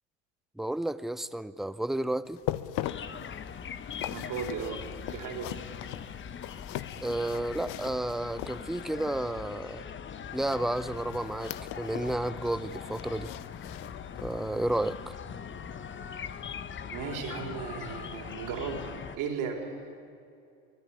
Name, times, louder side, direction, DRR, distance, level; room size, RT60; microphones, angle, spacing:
voice 1, 0.6-2.4 7.0-9.8 10.3-13.3 14.2-15.2, right 1 dB, ahead, 16 dB, 0.7 m, -31 dB
sound 1, 2.3-9.0 10.4-12.2 12.5-14.5 14.9-15.0 15.6-15.7, left 14 dB, 60° left, 1.0 m, -40 dB
sound 2, 2.8-19.2, left 7 dB, 35° left, 1.2 m, -41 dB
voice 2, 4.1-4.8 5.1-5.5 16.9-19.7, right 6 dB, 60° right, 3 dB, 4.1 m, -36 dB
24.5 x 15.5 x 9.8 m, 2.6 s
hypercardioid pair, 75°, 35 cm